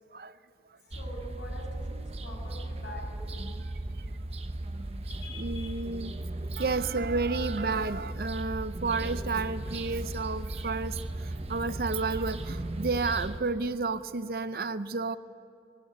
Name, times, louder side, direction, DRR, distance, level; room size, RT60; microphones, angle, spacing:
voice 1, 0.8-3.4 5.1-5.9, left 1 dB, 75° left, -1 dB, 6.7 m, -45 dB
sound 1, 0.9-13.4, right 1 dB, 35° right, 1.0 m, -36 dB
voice 2, 5.4-6.1 6.6-15.2, right 3 dB, 55° right, 13 dB, 0.6 m, -31 dB
20.0 x 18.5 x 9.6 m, 2.5 s
head